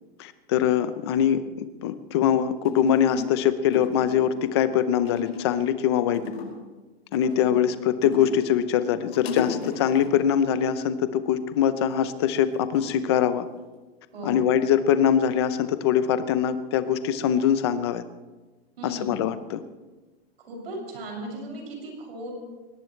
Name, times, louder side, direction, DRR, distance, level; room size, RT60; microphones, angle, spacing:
voice 1, 0.2-6.2 7.1-13.5 14.2-18.0 18.8-19.6, left 9 dB, 25° left, 12 dB, 0.7 m, -23 dB
sound 1, 2.6-3.4 3.7-4.5 5.0-5.8 6.1-6.7 7.1-8.5 8.8-10.2 11.8-12.2 12.7-13.8 14.1-14.6, left 5 dB, 75° left, 6.1 m, -36 dB
voice 2, 7.2-7.6 14.1-14.4 18.8-19.2 20.5-22.3, right 1 dB, 70° right, 0 dB, 6.9 m, -37 dB
22.0 x 19.0 x 3.3 m, 1.2 s
supercardioid pair, 180°, 31 cm